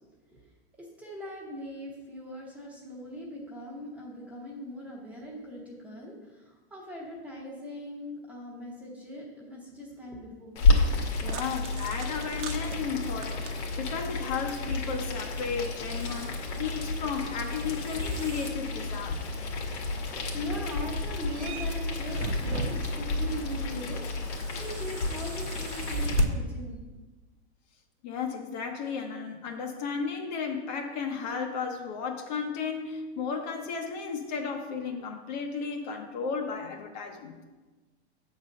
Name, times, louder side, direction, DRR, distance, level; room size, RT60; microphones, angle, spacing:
voice 1, 0.0-0.4 0.8-10.6 20.1-26.8, equal, 5° right, -4 dB, 0.9 m, -40 dB
Boiling, 10.6-26.2, left 3 dB, 75° left, 1.8 m, -30 dB
sound 1, 10.7-26.3, right 4 dB, 85° right, 1.0 m, -42 dB
voice 2, 11.2-19.3 28.0-37.4, left 5 dB, 40° left, 3 dB, 0.8 m, -34 dB
7.7 x 4.1 x 6.4 m, 1.2 s
supercardioid pair, 170°, 34 cm